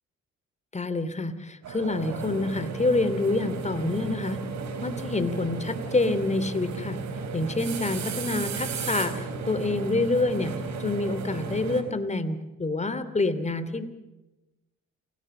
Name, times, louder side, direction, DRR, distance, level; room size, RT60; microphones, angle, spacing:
voice 1, 0.7-4.4 4.8-7.0 7.3-13.8, left 2 dB, 25° left, 11 dB, 2.8 m, -27 dB
sound 1, 1.6-11.8, right 4 dB, 65° right, 4.1 m, -34 dB
28.5 x 18.5 x 7.8 m, 1.1 s
supercardioid pair, 65°, 30 cm